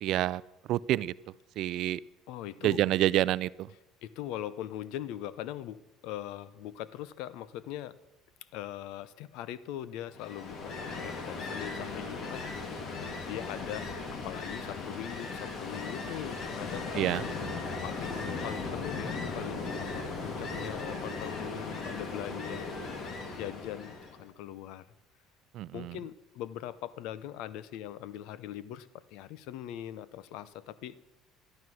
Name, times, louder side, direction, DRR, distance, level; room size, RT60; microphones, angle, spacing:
voice 1, 0.0-0.4 0.7-1.1 1.6-2.0 2.6-3.7 17.0-17.2 25.5-26.0, right 14 dB, 65° right, 20 dB, 0.4 m, -28 dB
voice 2, 2.3-2.8 4.0-8.0 8.5-12.5 13.2-17.2 17.8-24.9 25.7-31.0, left 12 dB, 75° left, 18 dB, 0.7 m, -41 dB
Ocean, 10.1-24.2, left 3 dB, 50° left, 2.6 m, -37 dB
12.5 x 11.5 x 6.2 m, 1.0 s
supercardioid pair, 95°, 0 cm